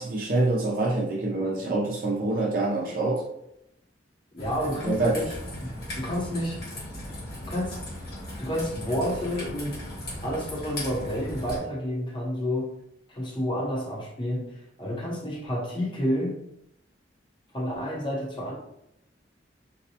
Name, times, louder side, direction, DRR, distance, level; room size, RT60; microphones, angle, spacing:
voice 1, 0.0-3.2 4.8-5.1, right 2 dB, 50° right, -2 dB, 0.5 m, -26 dB
voice 2, 4.3-5.4 5.9-6.6 7.4-7.8 8.4-9.8 10.2-12.8 13.1-16.4 17.5-18.5, equal, 25° left, -2 dB, 0.8 m, -30 dB
Raindrop / Trickle dribble, 4.4-11.6, left 1 dB, 60° left, 1.2 m, -38 dB
4.0 x 2.2 x 2.8 m, 0.81 s
head